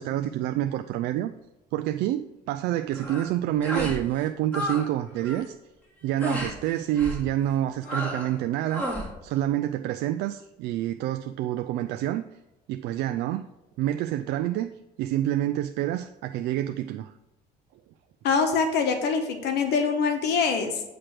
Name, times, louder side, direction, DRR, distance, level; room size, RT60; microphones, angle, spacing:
voice 1, 0.0-1.3 1.7-5.5 6.0-12.2 12.7-13.5 13.8-14.7 15.0-17.1, right 12 dB, 85° right, 8 dB, 0.4 m, -28 dB
sound 1, 2.9-3.3 3.6-4.0 4.3-4.9 5.1-5.5 6.2-6.5 7.0-7.3 7.8-8.3 8.7-9.1, equal, 10° left, 2.2 m, -32 dB
voice 2, 18.2-20.8, left 5 dB, 80° left, 5 dB, 1.1 m, -24 dB
8.9 x 3.3 x 5.9 m, 0.98 s
cardioid pair, 110°, 17 cm